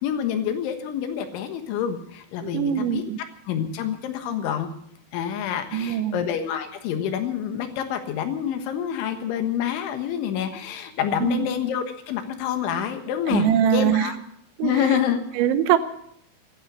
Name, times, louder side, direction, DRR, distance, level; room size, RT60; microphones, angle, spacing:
voice 1, 0.0-3.0 3.5-4.7 5.1-14.2 14.6-15.2, left 9 dB, 80° left, 7 dB, 3.7 m, -27 dB
voice 2, 2.4-3.2 5.7-6.2 11.2-11.5 13.3-14.1 14.6-14.9 15.4-15.8, right 10 dB, 80° right, 11 dB, 3.1 m, -22 dB
15.0 x 11.5 x 8.1 m, 0.70 s
omnidirectional pair, 5.6 m